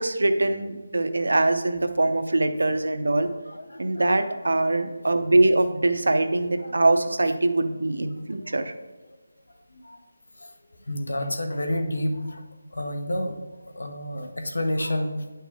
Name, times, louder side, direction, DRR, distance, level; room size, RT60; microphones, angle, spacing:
voice 1, 0.0-3.3 3.8-8.7, right 2 dB, 85° right, 8 dB, 0.8 m, -23 dB
voice 2, 3.2-4.4 4.8-5.1 6.6-6.7 8.0-8.1 8.4-8.7 9.5-10.0 10.3-12.4 12.7-15.3, left 1 dB, 85° left, 5 dB, 1.2 m, -31 dB
9.3 x 5.8 x 3.6 m, 1.2 s
figure-of-eight pair, 180°, 0 cm